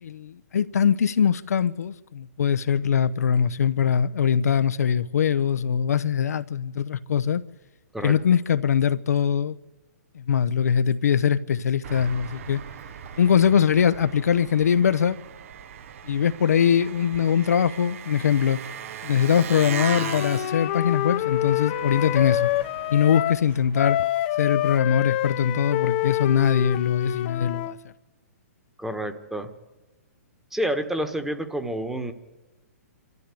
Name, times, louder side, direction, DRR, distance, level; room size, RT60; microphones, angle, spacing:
voice 1, 0.0-7.4 8.0-9.6 10.1-12.6 13.2-15.2 16.0-18.6 19.0-22.5 22.9-24.0 24.4-27.8, left 8 dB, 80° left, 0.8 m, -22 dB
Engine, 11.8-24.0, right 9 dB, 60° right, 1.0 m, -39 dB
Wind instrument woodwind instrument, 19.7-23.4 23.7-27.8, left 14 dB, 40° left, 0.8 m, -27 dB
voice 2, 28.8-29.5 30.5-32.1, right 1 dB, 5° right, 1.4 m, -28 dB
27.0 x 13.5 x 8.5 m
hypercardioid pair, 145°, 8 cm